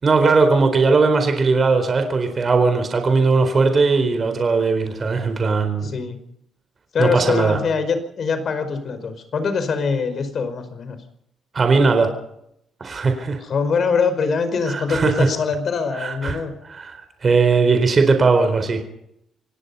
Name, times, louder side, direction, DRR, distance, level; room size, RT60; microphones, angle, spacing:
voice 1, 0.0-5.9 7.0-7.6 11.5-12.1 12.8-13.4 14.7-15.3 16.0-16.4 16.7-18.8, right 4 dB, 40° right, 6 dB, 4.2 m, -18 dB
voice 2, 5.8-6.2 6.9-11.0 13.4-16.5, left 5 dB, 55° left, 10 dB, 5.0 m, -23 dB
27.0 x 18.0 x 5.6 m, 0.77 s
cardioid pair, 90°, 0 cm